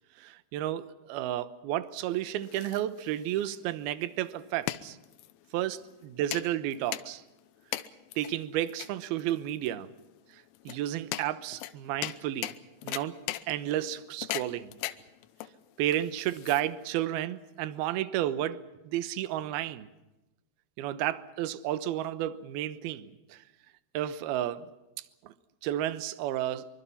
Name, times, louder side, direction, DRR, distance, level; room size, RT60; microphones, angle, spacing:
voice 1, 0.2-5.0 5.5-7.2 8.2-9.9 10.7-12.5 12.8-13.2 13.5-14.8 15.8-19.9 20.8-23.4 23.9-24.7 25.2-25.3 25.6-26.7, right 12 dB, 75° right, 2.5 m, -32 dB
sound 1, 2.1-17.0, left 15 dB, 85° left, 3.4 m, -40 dB
25.5 x 24.0 x 5.7 m
omnidirectional pair, 5.4 m